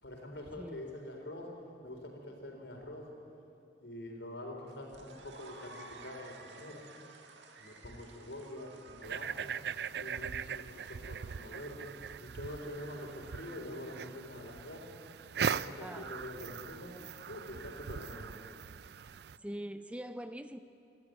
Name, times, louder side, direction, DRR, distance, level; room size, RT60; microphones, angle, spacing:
voice 1, 0.0-1.5 1.8-3.1 3.8-6.9 7.6-9.5 10.0-11.9 12.2-14.8 15.3-17.0 17.3-18.3, left 1 dB, 80° left, 2 dB, 4.2 m, -45 dB
sound 1, 4.7-14.0, right 3 dB, 80° right, 1.7 m, -55 dB
sound 2, 9.0-19.4, right 7 dB, 60° right, 0.4 m, -40 dB
voice 2, 15.8-16.1 16.4-16.5 19.4-20.6, right 1 dB, 5° right, 10 dB, 0.5 m, -43 dB
26.0 x 12.5 x 9.5 m, 2.6 s
head